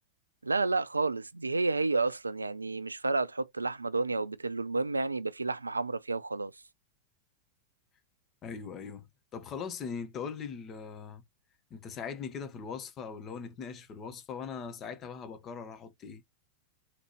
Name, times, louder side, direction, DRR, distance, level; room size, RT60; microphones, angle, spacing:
voice 1, 0.4-6.5, right 3 dB, 80° right, 0.4 m, -30 dB
voice 2, 8.4-11.2 11.7-16.2, left 6 dB, 30° left, 0.9 m, -40 dB
4.1 x 2.9 x 3.0 m
figure-of-eight pair, 90°, 0 cm